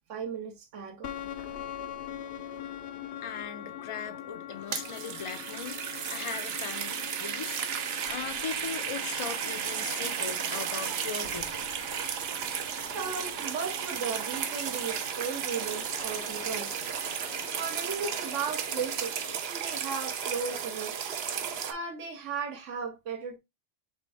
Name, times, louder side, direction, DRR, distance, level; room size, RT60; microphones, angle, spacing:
voice 1, 0.1-1.1 12.9-16.7 17.5-19.1 19.5-20.9 21.6-23.4, right 5 dB, 85° right, 1.2 m, -36 dB
sound 1, 1.0-19.4, left 9 dB, 75° left, 0.9 m, -44 dB
voice 2, 3.2-5.8 6.1-7.6 8.1-11.7, left 7 dB, 50° left, 0.3 m, -39 dB
sound 2, 4.5-21.7, right 7 dB, 65° right, 0.8 m, -34 dB
4.3 x 3.4 x 3.3 m
omnidirectional pair, 1.2 m